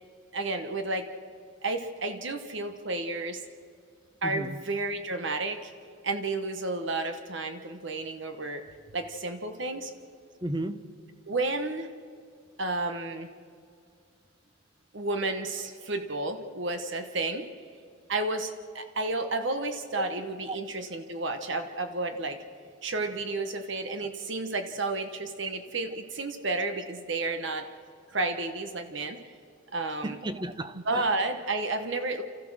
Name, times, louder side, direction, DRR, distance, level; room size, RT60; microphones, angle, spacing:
voice 1, 0.3-1.1 1.6-3.4 4.2-5.7 6.0-8.6 8.9-9.9 11.3-11.9 12.6-13.3 14.9-17.5 18.1-22.4 22.8-27.7 28.1-29.2 29.7-30.2 30.7-32.2, right 2 dB, 65° right, 1.2 m, -31 dB
voice 2, 4.2-4.6 10.4-10.9 20.0-20.1 20.5-20.6 23.9-24.0 30.0-31.0, right 1 dB, 20° right, 0.8 m, -34 dB
29.5 x 14.5 x 6.3 m
head